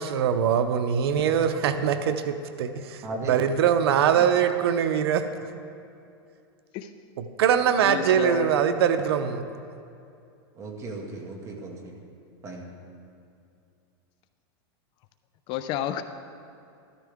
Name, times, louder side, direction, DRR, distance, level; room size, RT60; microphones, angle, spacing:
voice 1, 0.0-5.3 7.2-9.4, right 8 dB, 85° right, 9 dB, 0.7 m, -23 dB
voice 2, 3.0-3.9 10.6-12.0 12.4-12.7, right 2 dB, 25° right, 0 dB, 1.9 m, -36 dB
voice 3, 7.8-8.5 15.5-16.0, left 11 dB, 40° left, 10 dB, 0.5 m, -31 dB
14.5 x 13.0 x 3.6 m, 2.5 s
supercardioid pair, 145°, 13 cm